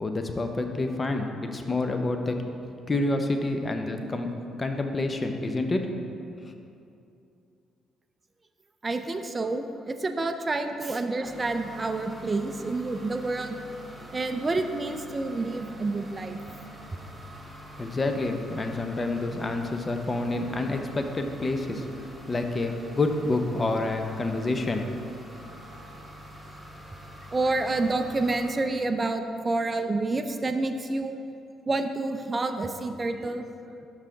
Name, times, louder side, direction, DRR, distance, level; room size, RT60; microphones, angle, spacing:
voice 1, 0.0-2.4 2.9-4.3 4.6-6.1 17.8-24.9, left 2 dB, 30° left, 5 dB, 0.5 m, -28 dB
voice 2, 8.8-13.6 14.1-16.4 27.3-31.2 31.7-33.5, right 2 dB, 30° right, 6 dB, 0.3 m, -28 dB
sound 1, 11.2-28.5, right 1 dB, 10° right, 1.0 m, -46 dB
5.6 x 4.8 x 3.8 m, 2.6 s
supercardioid pair, 75°, 0 cm